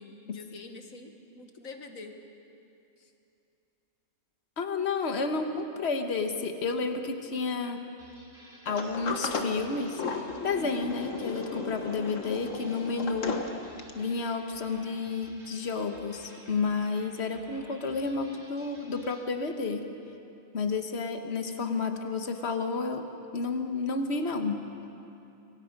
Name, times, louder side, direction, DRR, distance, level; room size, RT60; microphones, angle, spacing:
voice 1, 0.0-2.2, left 3 dB, 85° left, 5 dB, 2.0 m, -45 dB
voice 2, 4.6-7.8 8.6-13.4 13.9-19.8 20.5-23.1 23.3-24.6, left 4 dB, 55° left, 6 dB, 1.6 m, -31 dB
sound 1, 8.0-19.3, right 1 dB, 55° right, 3.7 m, -54 dB
Sliding door, 8.7-14.1, left 4 dB, 70° left, 1.7 m, -35 dB
27.0 x 23.0 x 5.3 m, 2.7 s
omnidirectional pair, 1.4 m